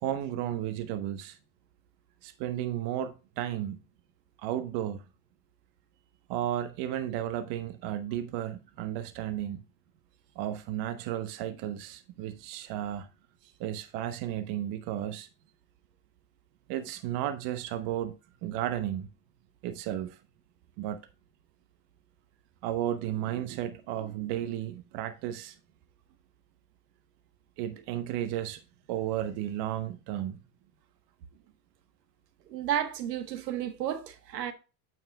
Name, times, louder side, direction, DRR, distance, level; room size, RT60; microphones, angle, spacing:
voice 1, 0.0-1.4 2.2-3.8 4.4-5.0 6.3-9.6 10.3-13.1 13.6-15.3 16.7-18.1 18.4-19.1 19.6-20.2 20.8-21.0 22.6-25.6 27.6-28.6 28.9-30.4, right 11 dB, 55° right, 1.1 m, -33 dB
voice 2, 32.5-34.5, right 10 dB, 80° right, 1.3 m, -32 dB
8.9 x 7.7 x 2.3 m
hypercardioid pair, 80°, 48 cm